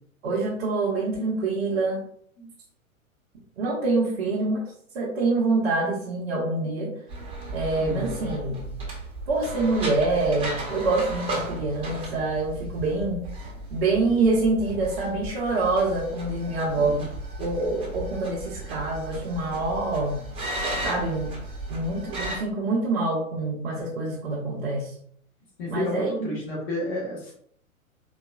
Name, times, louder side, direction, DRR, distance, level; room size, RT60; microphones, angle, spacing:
voice 1, 0.2-2.0 3.6-4.6 4.9-6.9 7.5-8.7 9.3-13.2 13.7-17.0 17.4-20.2 20.8-21.3 21.7-24.9 25.7-26.3, right 3 dB, 40° right, -4 dB, 0.8 m, -26 dB
sound 1, 7.1-22.4, right 1 dB, 15° right, 0.9 m, -35 dB
voice 2, 7.8-8.3 16.8-17.0 25.6-27.3, left 1 dB, 45° left, -4 dB, 1.3 m, -31 dB
4.1 x 3.0 x 2.3 m, 0.65 s
figure-of-eight pair, 105°, 42 cm